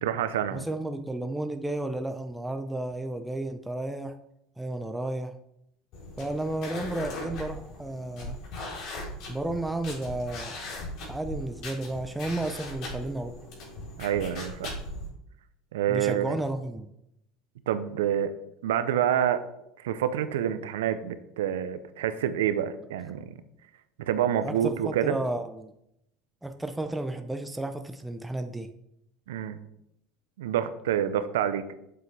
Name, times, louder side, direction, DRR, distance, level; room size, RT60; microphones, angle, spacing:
voice 1, 0.0-0.7 14.0-14.7 15.7-16.4 17.7-18.3 18.6-19.4 19.8-23.3 24.0-25.2 29.3-29.6 30.4-31.7, right 10 dB, 85° right, 12 dB, 0.7 m, -27 dB
voice 2, 0.5-4.2 4.6-5.3 6.2-8.4 9.3-10.6 11.1-13.4 15.9-16.9 24.4-25.7 26.4-28.7, right 2 dB, 5° right, 7 dB, 0.7 m, -32 dB
sound 1, 5.9-15.1, left 1 dB, 60° left, 3.6 m, -39 dB
8.3 x 7.5 x 3.4 m, 0.80 s
supercardioid pair, 95°, 0 cm